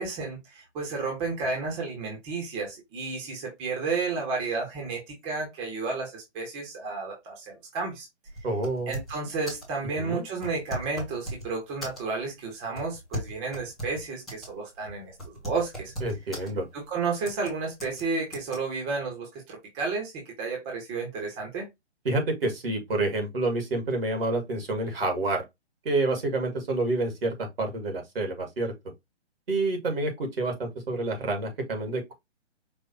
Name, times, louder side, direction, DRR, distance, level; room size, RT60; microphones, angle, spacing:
voice 1, 0.0-8.1 8.9-15.1 15.4-15.9 16.7-21.7, right 4 dB, 20° right, 1.5 m, -32 dB
sound 1, 8.3-9.2 9.5-9.7 10.4-11.5 11.8-12.3 12.8-14.5 14.8-14.9 15.2-16.5 17.2-17.5 17.8-18.0 18.3-18.6, equal, ahead, 0.4 m, -37 dB
voice 2, 8.4-9.0 9.9-10.2 16.0-16.7 22.0-25.4 25.8-28.7 29.5-32.1, right 2 dB, 55° right, 2.1 m, -28 dB
5.3 x 3.1 x 2.7 m
figure-of-eight pair, 130°, 35 cm